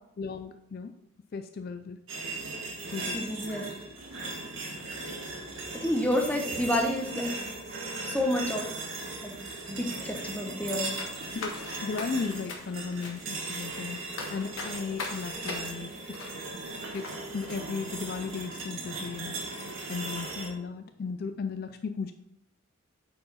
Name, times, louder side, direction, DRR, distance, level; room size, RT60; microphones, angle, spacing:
voice 1, 0.2-0.9 1.3-2.0 2.9-3.3 11.3-14.0 14.3-16.3 16.9-19.4 19.9-22.1, left 5 dB, 45° left, 9 dB, 0.3 m, -36 dB
sound 1, 2.1-20.5, right 2 dB, 85° right, 1.8 m, -38 dB
voice 2, 3.1-3.6 5.7-7.3 8.0-8.6 9.2-9.3 9.7-10.9, left 1 dB, 5° left, 2 dB, 0.9 m, -29 dB
sound 2, 11.0-17.1 17.5-17.6, left 3 dB, 90° left, 1.5 m, -41 dB
8.6 x 4.7 x 4.0 m, 0.84 s
head